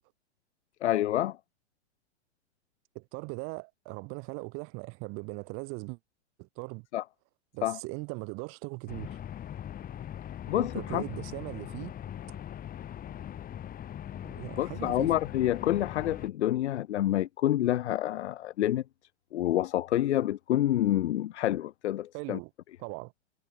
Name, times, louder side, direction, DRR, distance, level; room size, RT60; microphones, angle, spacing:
voice 1, 0.8-1.4 6.9-7.0 7.6-7.8 10.4-11.0 14.6-18.8 19.3-22.4, left 13 dB, 80° left, 0.5 m, -28 dB
voice 2, 2.9-6.0 6.4-6.9 7.5-9.2 10.5-11.9 14.2-15.1 22.1-22.5 22.8-23.1, right 30 dB, 40° right, 1.4 m, -39 dB
sound 1, 8.9-16.3, left 10 dB, 25° left, 5.1 m, -41 dB
hypercardioid pair, 115°, 34 cm